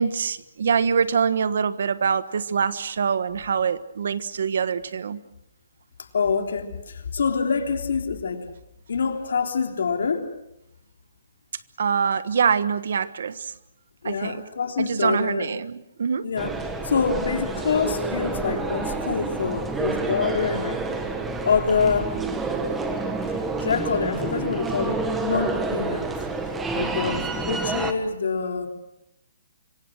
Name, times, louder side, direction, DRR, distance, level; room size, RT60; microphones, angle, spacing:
voice 1, 0.0-5.2 11.8-13.5 14.0-14.4 14.8-16.3, right 6 dB, 65° right, 14 dB, 1.3 m, -24 dB
voice 2, 6.1-8.4 8.9-10.3 14.0-15.5 16.2-16.5 16.8-20.8 21.4-22.2 23.6-26.1 26.7-28.7, left 5 dB, 75° left, 4 dB, 3.4 m, -26 dB
sound 1, 16.4-27.9, right 3 dB, 5° right, 1.6 m, -28 dB
26.5 x 23.5 x 6.3 m, 0.82 s
hypercardioid pair, 170°, 0 cm